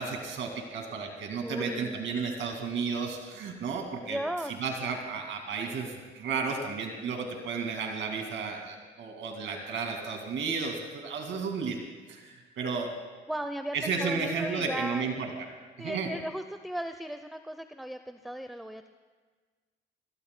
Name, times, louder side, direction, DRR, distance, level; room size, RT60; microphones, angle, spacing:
voice 1, 0.0-4.2 4.6-11.8 12.1-12.9 13.7-15.5 15.8-16.1, right 5 dB, 75° right, 3 dB, 2.1 m, -33 dB
voice 2, 1.4-1.9 4.0-4.5 13.3-15.1 15.8-18.9, right 1 dB, ahead, 9 dB, 0.6 m, -36 dB
27.0 x 19.5 x 2.2 m, 1.4 s
cardioid pair, 90°, 20 cm